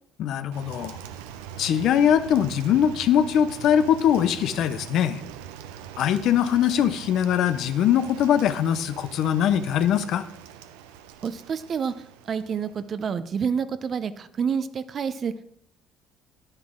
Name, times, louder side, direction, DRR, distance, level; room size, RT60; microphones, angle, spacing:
voice 1, 0.2-1.0 1.6-5.2 6.0-10.2, left 9 dB, 65° left, 12 dB, 0.6 m, -22 dB
Rain, 0.5-12.9, right 9 dB, 85° right, 0.6 m, -42 dB
voice 2, 11.2-11.9 12.3-15.4, right 6 dB, 45° right, 13 dB, 0.7 m, -28 dB
9.8 x 9.6 x 3.7 m, 0.70 s
supercardioid pair, 70°, 0 cm